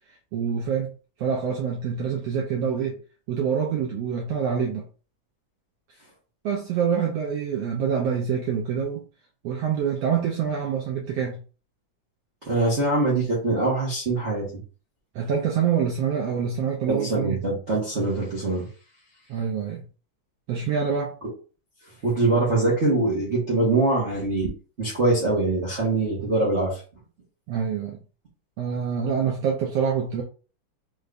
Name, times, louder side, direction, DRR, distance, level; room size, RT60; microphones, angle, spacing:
voice 1, 0.1-0.9 1.2-3.0 3.3-4.8 6.4-9.0 9.4-11.4 15.1-17.4 19.3-19.8 20.5-21.2 27.5-28.0 28.6-30.2, right 7 dB, 80° right, 1.4 m, -26 dB
voice 2, 12.4-14.4 16.9-18.7 22.0-24.5 24.8-26.8, right 2 dB, 60° right, 0.7 m, -23 dB
5.2 x 3.3 x 2.5 m
omnidirectional pair, 3.6 m